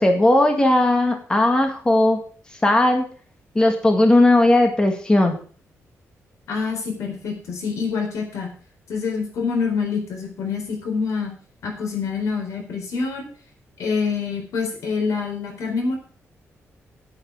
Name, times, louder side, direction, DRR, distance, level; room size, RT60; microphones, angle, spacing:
voice 1, 0.0-2.2 2.6-3.0 3.6-5.4, left 1 dB, 15° left, 4 dB, 1.8 m, -17 dB
voice 2, 6.5-8.5 8.9-11.3 11.6-13.3 13.8-16.0, left 5 dB, 85° left, 3 dB, 4.1 m, -26 dB
9.8 x 9.0 x 6.2 m, 0.43 s
wide cardioid pair, 150°, 5 cm